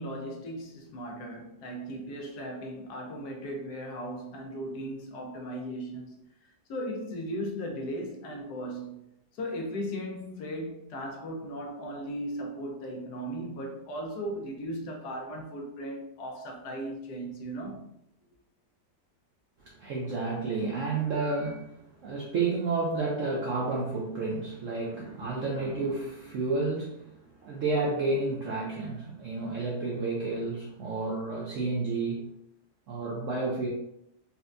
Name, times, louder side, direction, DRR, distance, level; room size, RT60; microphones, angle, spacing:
voice 1, 0.0-6.2 6.7-9.0 9.3-17.9, equal, 70° left, 1.2 m, -37 dB
voice 2, 19.6-21.7 22.0-27.1 27.4-32.2 32.9-33.7, right 3 dB, 70° right, 0.7 m, -31 dB
4.2 x 2.2 x 2.5 m
omnidirectional pair, 2.0 m